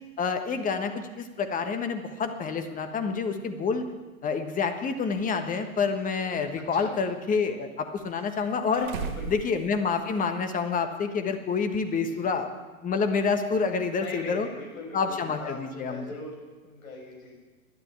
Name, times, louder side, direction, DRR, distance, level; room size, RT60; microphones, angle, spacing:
voice 1, 0.2-3.8 4.2-8.9 9.3-12.5 12.8-14.5 14.9-16.1, left 5 dB, 20° left, 7 dB, 1.4 m, -28 dB
sound 1, 5.2-5.3 6.1-7.1 8.0-10.3 10.6-10.7 12.3-12.4, right 5 dB, 55° right, 2.3 m, -39 dB
voice 2, 8.7-9.5 12.0-12.2 13.9-16.3 16.6-17.4, left 3 dB, 70° left, -1 dB, 6.1 m, -40 dB
12.0 x 10.5 x 8.7 m, 1.2 s
hypercardioid pair, 110°, 44 cm